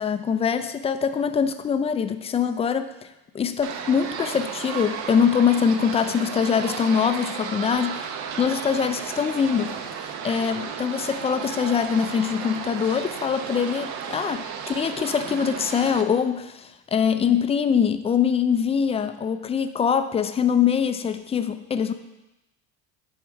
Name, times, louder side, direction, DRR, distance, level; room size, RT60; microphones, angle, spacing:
voice 1, 0.0-2.9 3.3-8.1 8.4-9.7 10.2-21.9, left 7 dB, 20° left, 9 dB, 0.4 m, -23 dB
sound 1, 3.6-16.0, right 7 dB, 50° right, 0.8 m, -34 dB
10.5 x 3.7 x 4.5 m, 0.96 s
supercardioid pair, 105°, 35 cm